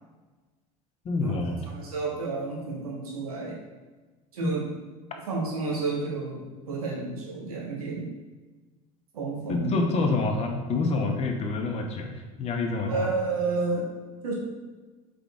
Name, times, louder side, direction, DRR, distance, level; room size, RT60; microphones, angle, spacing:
voice 1, 1.0-1.6 4.4-4.6 9.5-13.1, left 3 dB, 35° left, 3 dB, 0.7 m, -27 dB
voice 2, 1.6-3.6 4.3-4.7 5.3-8.1 9.1-9.8 12.9-13.9 14.2-14.3, right 3 dB, 85° right, -3 dB, 1.0 m, -30 dB
3.8 x 3.8 x 3.5 m, 1.3 s
hypercardioid pair, 85°, 18 cm